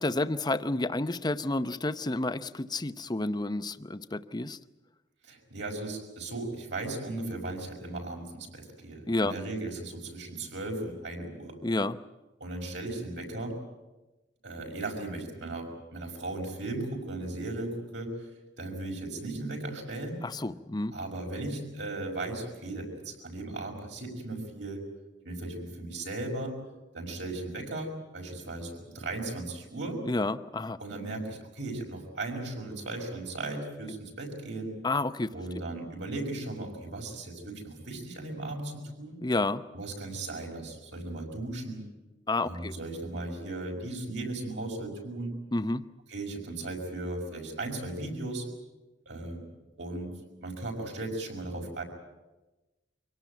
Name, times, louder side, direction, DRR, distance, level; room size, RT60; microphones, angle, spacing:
voice 1, 0.0-4.6 9.1-9.3 11.6-12.0 20.2-20.9 30.0-30.8 34.8-35.3 35.6-35.7 39.2-39.6 42.3-42.8 45.5-45.8, left 2 dB, 20° left, 12 dB, 0.7 m, -30 dB
voice 2, 5.2-11.6 12.4-13.6 14.4-18.3 18.6-20.2 20.9-24.9 25.2-26.6 26.9-30.0 30.8-34.7 35.3-39.2 39.7-41.8 42.4-45.4 46.1-48.5 49.1-49.4 49.8-50.1 50.4-51.8, right 2 dB, 70° right, 1 dB, 5.7 m, -37 dB
24.5 x 18.0 x 9.1 m, 1.1 s
head